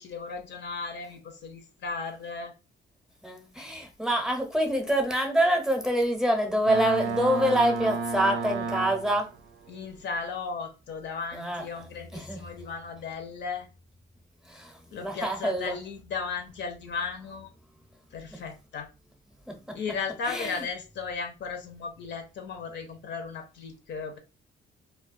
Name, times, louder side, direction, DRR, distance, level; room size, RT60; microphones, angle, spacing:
voice 1, 0.0-2.5 9.7-13.7 14.9-17.5 18.1-18.9 19.7-24.2, left 5 dB, 65° left, 0.6 m, -36 dB
voice 2, 3.2-9.3 11.3-11.6 12.1-12.4 14.5-14.7 15.0-15.7 20.3-20.6, right 1 dB, 5° right, 0.6 m, -26 dB
Boat Water vehicle, 6.7-9.4, right 4 dB, 75° right, 0.4 m, -31 dB
2.2 x 2.2 x 2.5 m
cardioid pair, 90°, 20 cm